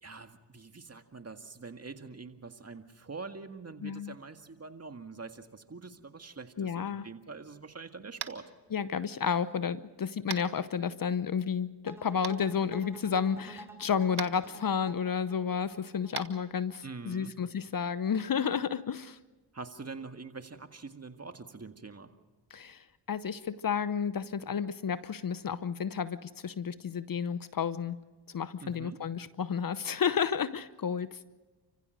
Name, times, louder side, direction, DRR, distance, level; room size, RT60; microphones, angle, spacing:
voice 1, 0.0-8.5 16.8-17.3 19.5-22.2 28.6-29.0, right 4 dB, 30° right, 7 dB, 1.9 m, -45 dB
voice 2, 3.8-4.1 6.6-7.1 8.7-19.2 22.5-28.0 28.3-31.3, left 7 dB, 45° left, 15 dB, 0.9 m, -31 dB
Tap, 8.2-8.4 10.3-10.5 12.2-12.3 14.1-14.3 16.1-16.3, right 8 dB, 50° right, 1.5 m, -37 dB
sound 1, 11.9-17.0, right 1 dB, 5° right, 3.6 m, -49 dB
29.5 x 15.5 x 6.5 m, 1.2 s
supercardioid pair, 55°, 48 cm